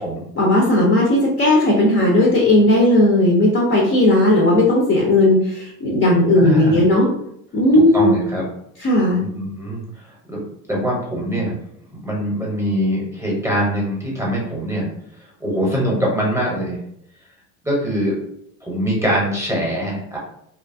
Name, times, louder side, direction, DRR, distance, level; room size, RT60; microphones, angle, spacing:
voice 1, 0.4-7.1 7.5-8.1 8.8-9.2, left 1 dB, 30° left, -2 dB, 0.5 m, -15 dB
voice 2, 6.4-6.8 7.7-8.4 9.2-9.8 10.3-10.4 10.7-11.6 11.9-14.9 15.4-16.8 17.6-18.2 18.6-20.2, equal, 5° right, -4 dB, 0.8 m, -23 dB
2.7 x 2.3 x 2.5 m, 0.72 s
supercardioid pair, 115°, 45 cm